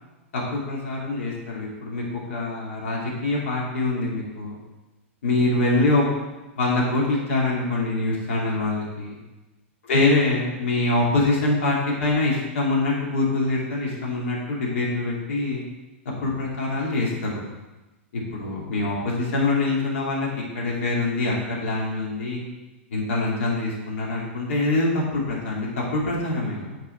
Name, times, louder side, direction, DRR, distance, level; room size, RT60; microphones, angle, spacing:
voice 1, 0.3-4.5 5.2-6.1 6.6-9.1 9.8-15.6 16.2-17.4 18.1-20.3 20.5-22.4 22.9-26.8, left 2 dB, 75° left, -4 dB, 2.6 m, -24 dB
9.0 x 4.6 x 4.5 m, 1.1 s
hypercardioid pair, 115°, 7 cm